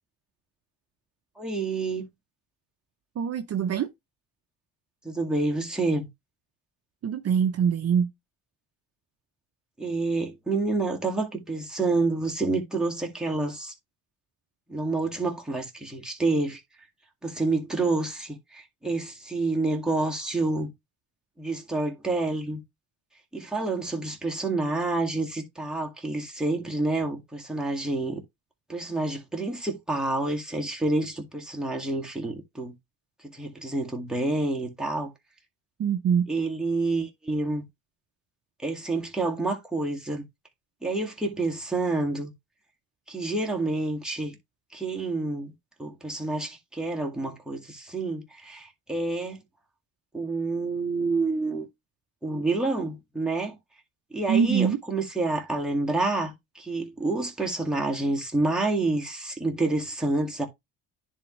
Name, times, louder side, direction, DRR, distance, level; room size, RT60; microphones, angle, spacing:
voice 1, 1.4-2.1 5.0-6.1 9.8-13.7 14.7-16.6 17.2-20.7 21.4-22.6 23.3-28.2 28.7-32.7 33.2-35.1 36.3-37.6 38.6-40.3 40.8-42.3 43.1-44.4 44.7-45.5 45.8-49.4 50.1-51.7 52.2-53.6 54.1-60.5, right 2 dB, ahead, 2.0 m, -28 dB
voice 2, 3.2-3.9 7.0-8.1 35.8-36.3 54.3-54.8, right 7 dB, 45° right, 0.7 m, -24 dB
10.5 x 3.6 x 3.0 m
cardioid pair, 90°, 35 cm